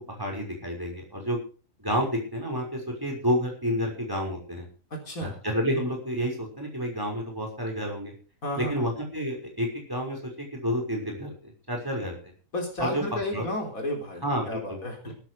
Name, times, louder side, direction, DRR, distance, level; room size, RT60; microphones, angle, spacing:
voice 1, 0.1-1.4 1.8-4.7 5.2-8.1 8.6-12.3 12.8-13.4 14.2-14.8, equal, 15° right, 1 dB, 5.8 m, -30 dB
voice 2, 4.9-5.4 8.4-8.9 12.5-15.1, left 1 dB, 90° left, 1 dB, 4.2 m, -32 dB
15.5 x 13.5 x 5.0 m, 0.38 s
omnidirectional pair, 1.4 m